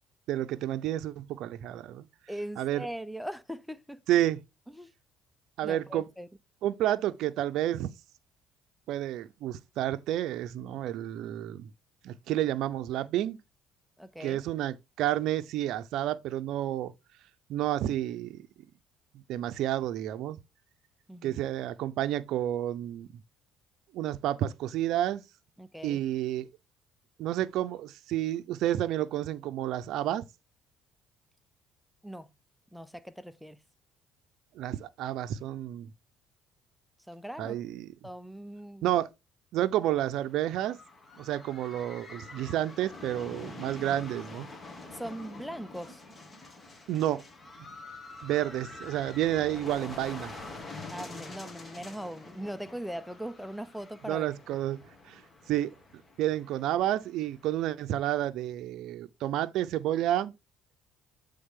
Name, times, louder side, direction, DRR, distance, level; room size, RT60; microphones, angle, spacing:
voice 1, 0.3-2.0 2.6-2.9 4.1-4.4 5.6-6.1 6.6-7.9 8.9-11.7 12.0-13.4 14.2-16.9 17.5-18.5 19.1-20.4 21.2-23.2 23.9-25.2 25.8-26.5 27.2-30.2 34.5-35.9 37.4-37.9 38.8-39.1 39.5-40.8 41.2-44.5 46.9-47.2 48.2-50.3 54.1-54.8 55.1-55.2 55.5-55.7 56.2-60.3, right 13 dB, 70° right, 0.6 m, -30 dB
voice 2, 2.3-4.0 4.7-4.9 5.6-6.3 14.0-14.4 21.1-21.4 25.6-26.0 32.0-32.3 32.7-33.6 37.1-37.6 38.0-38.9 44.9-46.0 50.9-54.3, equal, ahead, 0.6 m, -40 dB
sound 1, 40.1-57.8, left 3 dB, 25° left, 1.8 m, -46 dB
7.9 x 3.5 x 3.6 m
supercardioid pair, 75°, 0 cm